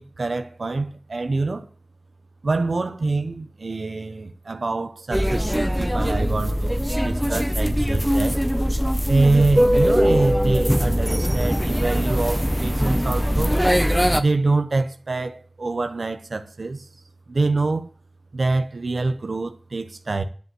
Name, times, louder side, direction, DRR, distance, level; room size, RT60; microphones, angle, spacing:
voice 1, 0.0-1.7 2.4-8.4 9.1-13.6 14.2-16.9 17.3-17.9 18.3-20.2, right 3 dB, 90° right, 0.8 m, -25 dB
sound 1, 5.1-14.2, equal, 5° right, 1.0 m, -21 dB
10.5 x 5.4 x 7.5 m
wide cardioid pair, 50°, 0 cm